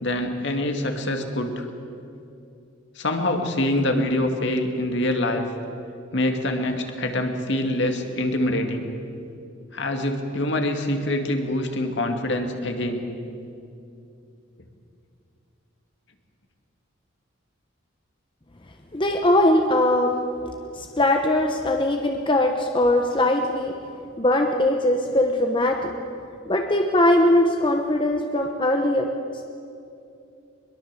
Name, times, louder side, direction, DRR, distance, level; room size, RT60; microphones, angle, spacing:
voice 1, 0.0-1.6 3.0-5.5 6.1-8.9 9.7-13.1, left 1 dB, 60° left, 4 dB, 2.3 m, -25 dB
voice 2, 18.9-20.1 20.7-23.8 24.2-25.9 26.5-29.1, left 1 dB, 25° left, 3 dB, 1.1 m, -20 dB
22.5 x 22.0 x 7.6 m, 2.6 s
head